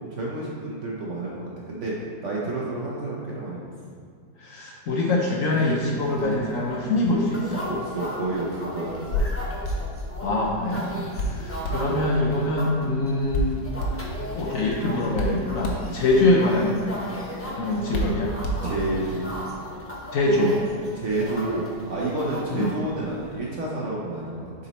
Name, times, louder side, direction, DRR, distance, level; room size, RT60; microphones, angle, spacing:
voice 1, 0.0-1.9 2.2-3.7 7.6-9.2 10.9-11.2 11.9-12.0 15.8-16.0 18.6-19.2 20.9-24.5, right 2 dB, 55° right, -4 dB, 0.9 m, -30 dB
voice 2, 4.4-7.6 10.2-10.9 11.2-13.6 14.3-16.8 17.6-18.3 20.1-20.6 22.5-22.7, left 2 dB, 60° left, -2 dB, 1.0 m, -23 dB
sound 1, 5.5-23.3, left 1 dB, 15° left, 0.4 m, -38 dB
Hands, 8.8-19.1, equal, 80° left, 1.5 m, -32 dB
6.9 x 4.1 x 4.1 m, 2.1 s
omnidirectional pair, 1.9 m